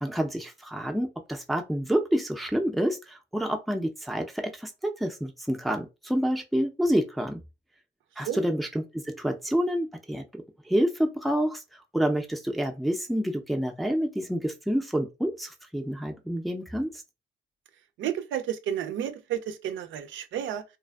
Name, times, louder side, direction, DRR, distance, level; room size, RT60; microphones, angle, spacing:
voice 1, 0.0-7.4 8.2-16.9, equal, ahead, 0.4 m, -28 dB
voice 2, 18.0-20.6, right 10 dB, 75° right, 0.4 m, -31 dB
2.5 x 2.4 x 2.3 m
cardioid pair, 90°, 20 cm